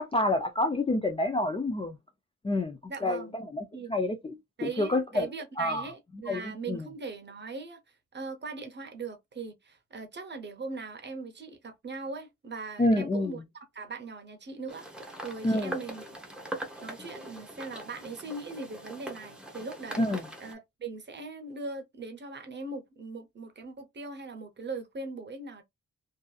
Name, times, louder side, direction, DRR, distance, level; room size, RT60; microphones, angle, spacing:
voice 1, 0.0-2.0 2.4-4.3 4.6-5.3 5.6-5.9 6.3-6.8 12.8-13.4 15.4-15.7 20.0-20.3, left 1 dB, 20° left, 0.3 m, -28 dB
voice 2, 2.9-3.4 3.7-3.9 4.6-7.8 8.1-13.4 13.7-16.0 16.6-20.0 20.4-25.6, right 3 dB, 35° right, 0.7 m, -40 dB
sound 1, 14.7-20.5, right 1 dB, 5° right, 0.8 m, -42 dB
2.6 x 2.4 x 2.3 m
wide cardioid pair, 105°, 31 cm